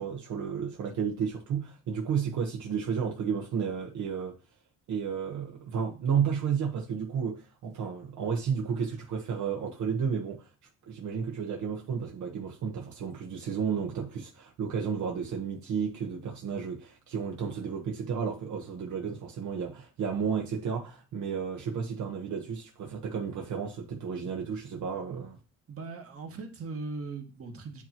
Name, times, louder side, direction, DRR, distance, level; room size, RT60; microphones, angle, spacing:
voice 1, 0.0-4.3 4.9-10.5 10.9-25.4, right 6 dB, 75° right, 1.1 m, -32 dB
voice 2, 25.7-27.8, right 4 dB, 50° right, 1.6 m, -39 dB
8.6 x 2.9 x 4.4 m
cardioid pair, 90°, 30 cm